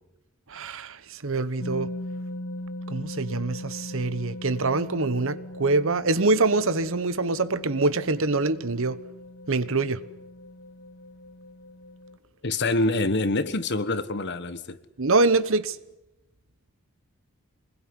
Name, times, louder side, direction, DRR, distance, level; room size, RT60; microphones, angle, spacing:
voice 1, 0.5-1.9 2.9-9.0 9.5-10.0 15.0-15.8, right 3 dB, 65° right, 1.1 m, -25 dB
sound 1, 1.6-12.2, left 1 dB, 75° left, 1.2 m, -39 dB
voice 2, 12.4-14.8, left 2 dB, 50° left, 1.4 m, -26 dB
26.5 x 21.0 x 9.7 m
head